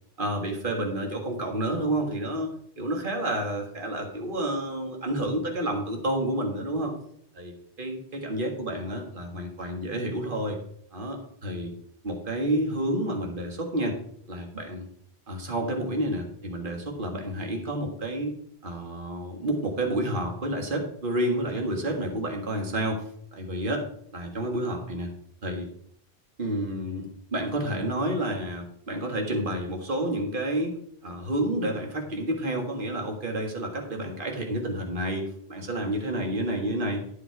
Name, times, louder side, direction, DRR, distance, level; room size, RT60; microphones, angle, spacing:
voice 1, 0.2-6.9 7.3-10.6 10.9-11.7 12.0-14.0 14.3-14.9 15.3-18.3 18.6-23.0 23.3-23.8 24.1-25.1 25.4-25.7 26.4-27.1 27.3-30.8 31.0-35.2 35.5-37.0, right 1 dB, 50° right, 2 dB, 2.0 m, -29 dB
12.0 x 7.6 x 4.7 m, 0.65 s
omnidirectional pair, 1.1 m